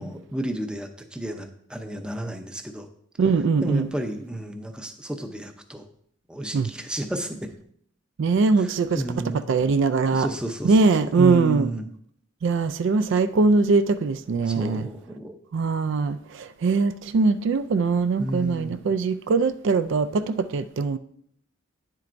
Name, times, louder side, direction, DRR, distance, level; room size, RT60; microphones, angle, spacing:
voice 1, 0.0-2.9 3.6-5.8 6.3-7.5 8.6-9.4 10.1-10.8 11.2-11.9 14.5-15.4 18.2-18.8, right 1 dB, 5° right, 0.6 m, -31 dB
voice 2, 3.2-3.9 6.5-6.7 8.2-9.0 9.5-10.3 10.6-11.7 12.4-14.9 15.5-21.0, right 4 dB, 60° right, 0.3 m, -22 dB
9.4 x 7.4 x 2.6 m
head